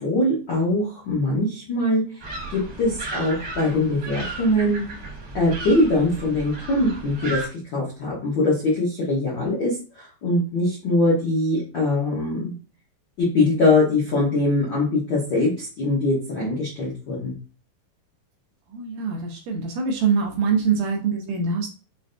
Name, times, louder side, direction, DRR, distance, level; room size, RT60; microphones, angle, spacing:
voice 1, 0.0-2.2 2.5-4.8 5.3-7.4 7.7-12.5 13.2-17.3, left 2 dB, 90° left, -6 dB, 1.0 m, -22 dB
sound 1, 2.2-7.5, right 3 dB, 60° right, 0.9 m, -35 dB
voice 2, 18.7-21.7, right 5 dB, 90° right, -1 dB, 1.5 m, -24 dB
6.2 x 3.3 x 2.6 m, 0.36 s
omnidirectional pair, 4.2 m